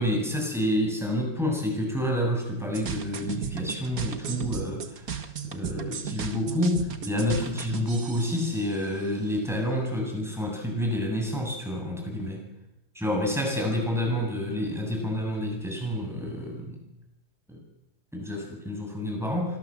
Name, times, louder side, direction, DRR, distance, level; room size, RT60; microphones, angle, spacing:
voice 1, 0.0-5.2 5.4-12.5 13.0-16.8 17.5-17.6 18.1-19.6, left 1 dB, ahead, 1 dB, 7.5 m, -29 dB
sound 1, 2.7-8.9, right 7 dB, 50° right, 2.0 m, -35 dB
25.0 x 19.0 x 7.8 m, 0.88 s
omnidirectional pair, 2.0 m